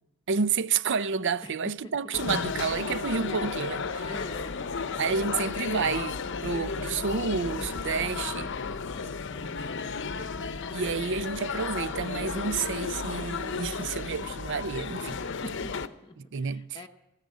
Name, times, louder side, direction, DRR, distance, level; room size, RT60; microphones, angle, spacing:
voice 1, 0.3-4.2 5.0-8.5 9.0-9.1 10.7-15.2 16.2-16.9, right 5 dB, 60° right, 0.6 m, -30 dB
sound 1, 2.1-15.9, left 5 dB, 60° left, 0.8 m, -33 dB
voice 2, 4.0-4.5 9.4-9.9 15.6-16.1 16.7-16.9, left 2 dB, 20° left, 0.8 m, -43 dB
14.5 x 10.0 x 8.3 m
head